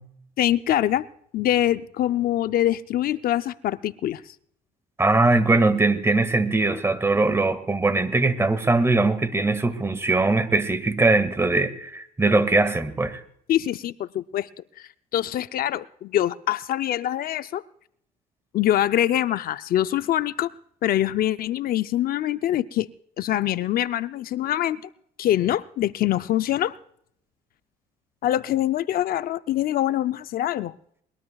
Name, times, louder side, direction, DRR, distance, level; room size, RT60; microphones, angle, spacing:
voice 1, 0.4-1.0 1.3-4.3 13.5-14.5 14.8-17.6 18.5-20.5 20.8-22.9 23.2-24.8 25.2-26.7 28.2-30.7, left 12 dB, 60° left, 12 dB, 0.5 m, -24 dB
voice 2, 5.0-13.2, right 3 dB, 15° right, 12 dB, 1.8 m, -21 dB
22.5 x 21.0 x 2.3 m, 0.67 s
cardioid pair, 110°, 17 cm